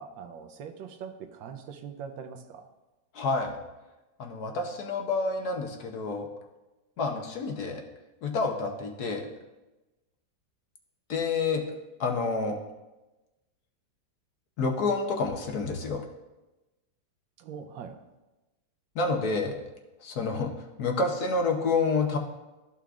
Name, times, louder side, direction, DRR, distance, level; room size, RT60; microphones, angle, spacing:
voice 1, 0.0-2.7 17.4-18.0, right 6 dB, 85° right, 7 dB, 1.4 m, -42 dB
voice 2, 3.1-3.6 4.2-6.3 7.0-7.8 8.2-9.3 11.1-11.6 12.0-12.6 14.6-16.0 18.9-19.5 20.0-22.2, left 3 dB, 60° left, 2 dB, 1.2 m, -28 dB
12.5 x 5.8 x 2.4 m, 1.1 s
omnidirectional pair, 2.0 m